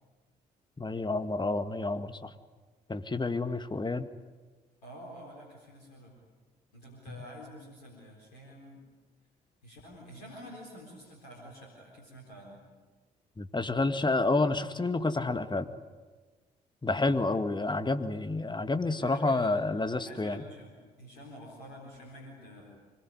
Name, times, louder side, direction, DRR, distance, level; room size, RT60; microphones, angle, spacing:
voice 1, 0.8-2.3 2.9-4.1 7.1-7.2 13.4-15.7 16.8-20.4, left 3 dB, 20° left, 9 dB, 2.1 m, -29 dB
voice 2, 4.8-6.1 6.7-8.8 9.6-12.6 18.9-19.6 20.0-22.8, equal, 85° left, -1 dB, 4.2 m, -48 dB
25.0 x 21.5 x 9.8 m, 1.3 s
hypercardioid pair, 45°, 20 cm